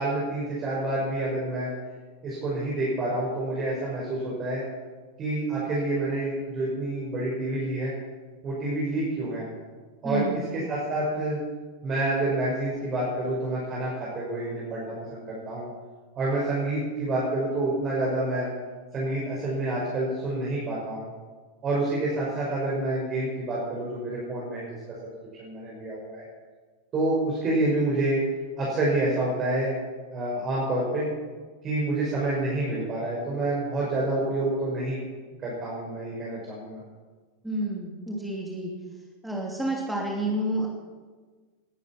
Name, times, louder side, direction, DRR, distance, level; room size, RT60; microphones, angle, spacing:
voice 1, 0.0-1.7 2.2-4.6 5.2-7.9 8.4-9.5 10.0-11.4 11.8-15.7 16.2-18.5 18.9-21.1 21.6-24.7 25.4-26.2 26.9-28.2 28.6-29.7 30.1-31.1 31.6-35.0 35.4-36.8, right 2 dB, 30° right, -5 dB, 5.5 m, -28 dB
voice 2, 10.0-10.5 37.4-38.7 39.2-40.7, right 1 dB, 5° right, -2 dB, 2.9 m, -29 dB
19.5 x 12.0 x 6.0 m, 1.4 s
figure-of-eight pair, 90°, 0 cm